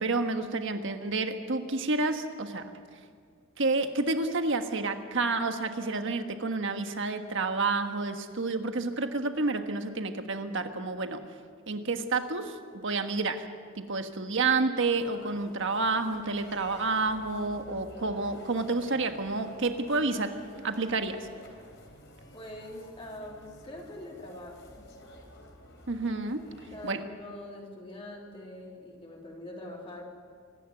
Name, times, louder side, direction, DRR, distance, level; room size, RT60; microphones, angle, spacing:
voice 1, 0.0-2.7 3.6-11.2 11.7-13.5 13.7-20.3 20.6-21.3 25.9-26.5 26.8-27.0, right 3 dB, 65° right, 7 dB, 1.5 m, -29 dB
sound 1, 14.9-26.9, left 1 dB, 60° left, 3.6 m, -51 dB
voice 2, 22.3-24.8 26.5-30.0, left 1 dB, 25° left, -2 dB, 3.2 m, -44 dB
25.0 x 11.0 x 9.4 m, 2.1 s
head